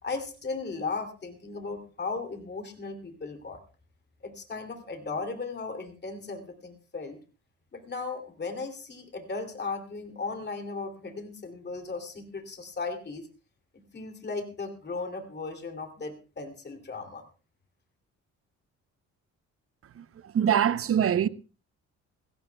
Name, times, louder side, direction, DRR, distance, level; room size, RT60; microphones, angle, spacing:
voice 1, 0.0-3.6 4.2-7.2 7.7-13.3 13.9-17.2, left 4 dB, 35° left, 2.9 m, -36 dB
voice 2, 20.0-21.3, right 9 dB, 50° right, 0.7 m, -24 dB
20.5 x 16.5 x 2.3 m
cardioid pair, 90°, 30 cm